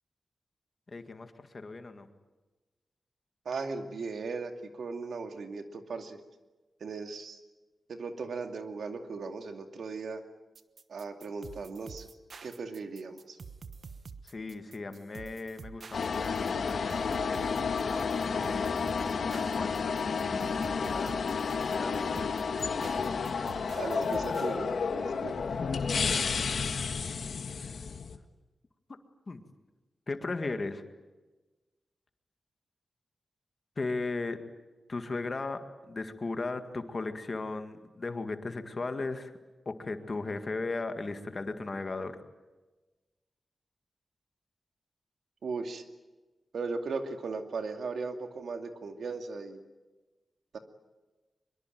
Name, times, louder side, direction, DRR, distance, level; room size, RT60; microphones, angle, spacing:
voice 1, 0.9-2.1 14.2-17.5 18.2-21.2 21.7-22.1 25.9-26.6 27.5-27.7 28.9-29.0 29.3-29.4 30.1-30.8 33.8-34.4 34.9-35.6 35.9-39.3 39.7-42.1, left 3 dB, 35° left, 8 dB, 1.8 m, -37 dB
voice 2, 3.5-6.2 6.8-7.4 7.9-10.2 10.9-12.0 12.4-13.4 23.7-25.4 45.4-45.8 46.5-49.6 50.5-50.6, right 4 dB, 80° right, 6 dB, 2.3 m, -37 dB
sound 1, 10.6-24.6, right 5 dB, 55° right, 1.2 m, -48 dB
sound 2, 15.9-28.2, left 5 dB, 65° left, 1.6 m, -31 dB
24.0 x 23.0 x 9.3 m, 1.2 s
wide cardioid pair, 175°, 0 cm